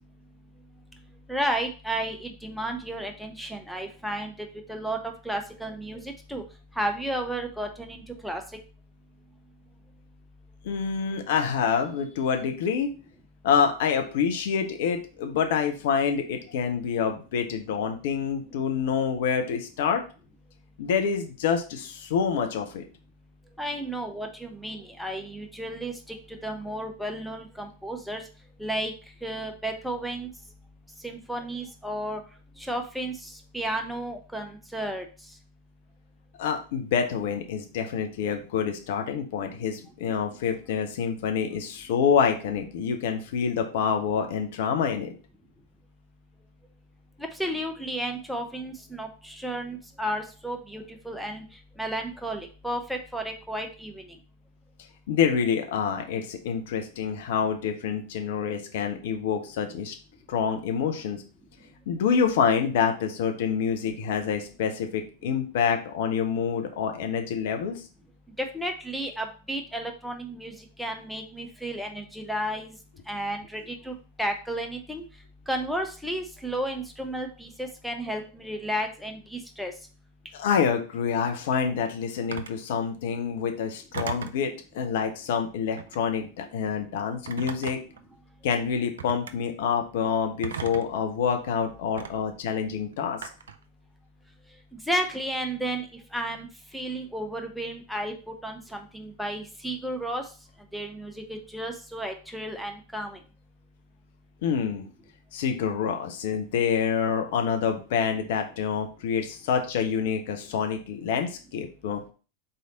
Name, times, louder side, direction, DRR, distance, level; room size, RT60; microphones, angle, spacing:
voice 1, 1.3-4.3 4.7-6.4 6.8-8.4 23.6-26.2 26.4-28.2 28.6-28.9 29.2-30.3 31.0-32.2 32.6-35.1 47.4-51.4 51.8-54.0 68.4-70.5 70.8-72.7 73.1-75.0 75.5-79.7 94.9-95.8 96.1-96.5 96.7-98.1 98.4-100.2 100.7-103.2, right 1 dB, ahead, 4 dB, 0.6 m, -32 dB
voice 2, 10.6-12.9 13.4-20.0 20.8-22.8 36.4-45.1 55.1-60.0 60.3-61.2 61.9-67.8 80.3-87.8 88.4-93.2 104.4-104.9 105.3-112.0, left 7 dB, 55° left, 5 dB, 0.7 m, -27 dB
Telephone, 82.3-82.6 83.9-84.4 85.7-86.1 87.3-88.0 89.0-89.3 90.4-91.0 92.0-92.1 93.2-93.6, right 7 dB, 65° right, 0.4 m, -36 dB
4.0 x 3.3 x 3.8 m, 0.36 s
figure-of-eight pair, 90°, 0 cm